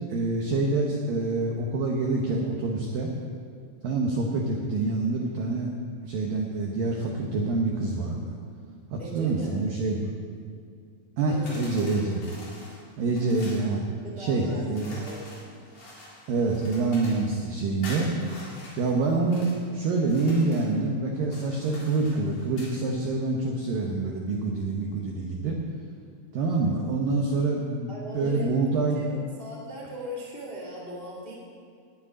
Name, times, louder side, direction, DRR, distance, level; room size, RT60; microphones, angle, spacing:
voice 1, 0.1-3.1 3.8-5.7 6.0-8.3 8.9-10.1 11.2-12.2 13.0-13.8 14.2-15.0 16.3-18.1 18.8-25.6 26.3-29.0, right 3 dB, 90° right, 0 dB, 1.9 m, -26 dB
voice 2, 9.0-9.6 11.3-12.0 14.0-14.7 14.9-15.2 27.9-28.5 28.9-31.3, equal, 70° left, -4 dB, 0.5 m, -39 dB
sound 1, 11.5-13.7 14.7-17.3 17.8-19.6 20.0-20.7 21.2-22.8, left 1 dB, 45° left, 4.8 m, -45 dB
10.0 x 9.6 x 9.8 m, 2.2 s
omnidirectional pair, 5.7 m